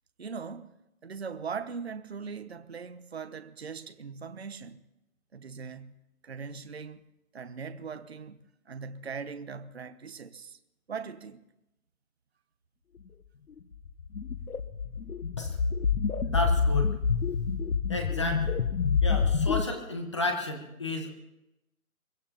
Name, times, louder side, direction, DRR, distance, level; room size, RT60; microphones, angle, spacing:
voice 1, 0.2-0.7 1.0-4.8 5.3-6.0 6.2-7.0 7.3-8.4 8.7-10.6 10.9-11.4, right 5 dB, 45° right, 0.8 m, -40 dB
sound 1, 13.9-19.6, left 5 dB, 80° left, 1.1 m, -27 dB
voice 2, 16.2-16.9 17.9-18.6 19.0-21.2, left 1 dB, 20° left, 1.2 m, -32 dB
23.0 x 21.0 x 2.9 m
hypercardioid pair, 175°, 43 cm